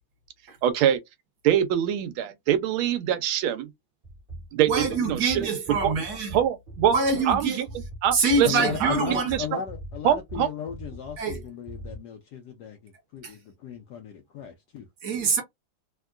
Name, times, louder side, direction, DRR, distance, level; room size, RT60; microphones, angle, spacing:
voice 1, 0.6-1.0 1.4-3.7 4.5-5.9 6.3-7.0 7.3-7.7 8.0-9.4 10.0-10.5, right 10 dB, 80° right, 1.4 m, -24 dB
sound 1, 4.0-12.0, right 1 dB, 45° right, 0.7 m, -40 dB
voice 2, 4.7-6.4 6.9-7.6 8.1-9.3 11.2-11.4 13.2-13.3 15.0-15.4, right 3 dB, 60° right, 1.2 m, -25 dB
voice 3, 8.4-14.9, left 8 dB, 80° left, 0.9 m, -36 dB
3.5 x 2.2 x 2.3 m
omnidirectional pair, 2.3 m